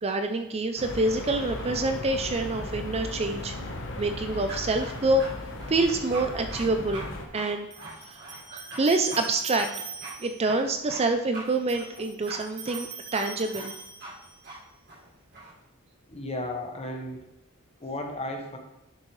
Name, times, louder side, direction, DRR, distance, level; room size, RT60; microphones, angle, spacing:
voice 1, 0.0-3.5 4.0-5.2 5.7-7.1 7.3-7.7 8.1-8.2 8.5-9.7 10.2-13.7, right 2 dB, 30° right, 7 dB, 0.4 m, -26 dB
sound 1, 0.8-7.3, left 1 dB, 60° left, 1.1 m, -37 dB
sound 2, 4.5-5.3 5.6-6.2 6.5-6.7 6.9-7.1 7.3-8.4 8.7-8.8 9.1-9.3 9.6-9.7 10.0-10.1 10.5-11.0 11.3-11.5 11.7-12.4 12.6-12.8 13.1-13.2 13.5-13.7 14.0-14.1 14.4-14.6 14.9-15.5, right 2 dB, 55° right, 3.1 m, -40 dB
sound 3, 7.7-10.5 11.5-14.5, right 5 dB, 80° right, 2.7 m, -42 dB
voice 2, 16.1-17.2 17.8-18.6, left 1 dB, 30° left, 2 dB, 1.2 m, -34 dB
10.5 x 6.4 x 3.2 m, 0.87 s
head